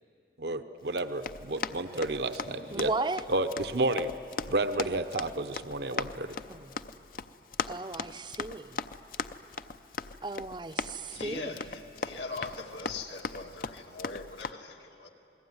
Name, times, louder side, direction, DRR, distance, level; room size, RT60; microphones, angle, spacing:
voice 1, 0.4-2.9 3.3-4.1 4.5-6.3, right 2 dB, 70° right, 9 dB, 0.9 m, -31 dB
Run, 0.9-14.5, left 4 dB, 50° left, 0.6 m, -39 dB
voice 2, 2.7-3.2 6.5-6.8 7.7-8.8 10.2-11.5, right 3 dB, 25° right, 11 dB, 0.6 m, -35 dB
voice 3, 11.0-15.1, left 3 dB, 80° left, 2 dB, 2.4 m, -41 dB
28.0 x 20.5 x 9.5 m, 2.7 s
head